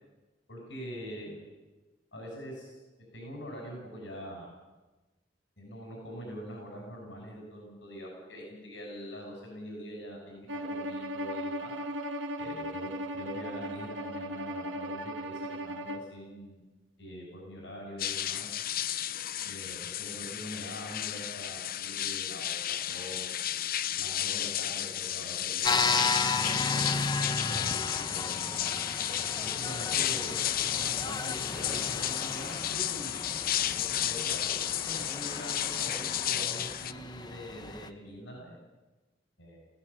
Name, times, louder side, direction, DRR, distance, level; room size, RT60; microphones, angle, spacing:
voice 1, 0.5-1.5 2.1-2.8 3.1-4.5 5.6-11.7 12.4-16.6 17.0-18.5 19.4-23.7 23.9-26.0 26.7-28.7 29.3-33.2 33.6-33.7 34.0-38.6 39.4-39.6, equal, 85° left, -1 dB, 6.8 m, -44 dB
Bowed string instrument, 10.5-16.1, equal, 85° right, 1.7 m, -37 dB
sound 1, 18.0-36.9, left 11 dB, 55° left, 0.6 m, -33 dB
sound 2, 25.6-37.9, left 3 dB, 25° left, 1.0 m, -34 dB
19.5 x 16.0 x 8.6 m, 1.2 s
head